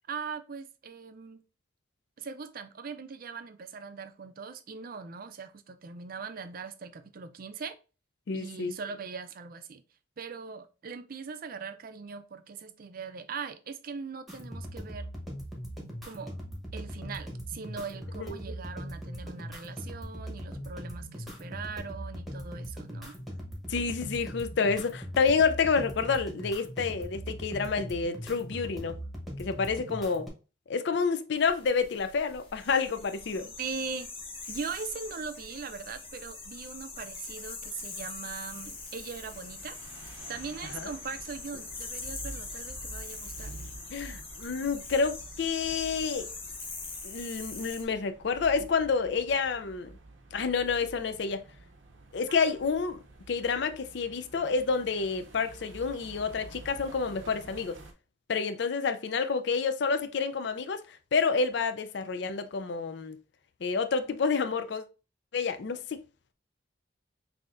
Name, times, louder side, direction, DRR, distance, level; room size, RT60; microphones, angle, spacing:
voice 1, 0.1-1.4 2.2-7.8 8.3-9.8 10.2-15.1 16.0-16.3 16.7-23.2 33.6-34.1 34.5-39.8 40.3-43.6, right 5 dB, 50° right, 0.4 m, -40 dB
voice 2, 8.3-8.7 18.3-18.4 23.7-29.0 29.4-30.3 30.7-33.5 40.8-40.9 43.9-46.3 47.0-49.9 50.3-51.4 52.1-53.0 53.3-57.8 58.3-60.8 61.1-63.2 63.6-64.8 65.3-65.8, left 5 dB, 65° left, 0.4 m, -29 dB
sound 1, 14.3-30.3, equal, ahead, 1.0 m, -40 dB
sound 2, 31.3-47.8, left 3 dB, 30° left, 1.0 m, -43 dB
sound 3, 38.2-57.9, right 2 dB, 85° right, 0.7 m, -49 dB
6.0 x 2.8 x 2.5 m
head